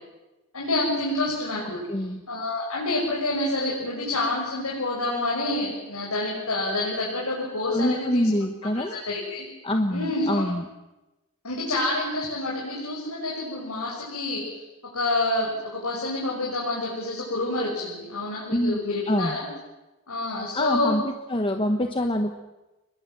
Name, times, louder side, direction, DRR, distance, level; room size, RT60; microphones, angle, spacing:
voice 1, 0.5-1.8 2.3-8.2 8.7-9.5 9.9-10.5 11.4-14.6 14.9-19.5 20.1-20.9, left 2 dB, 90° left, -4 dB, 6.8 m, -28 dB
voice 2, 1.9-2.2 7.7-9.0 9.6-10.6 18.5-19.4 20.5-21.0 21.3-22.3, left 1 dB, 25° left, 5 dB, 1.2 m, -25 dB
30.0 x 21.5 x 7.6 m, 1.1 s
head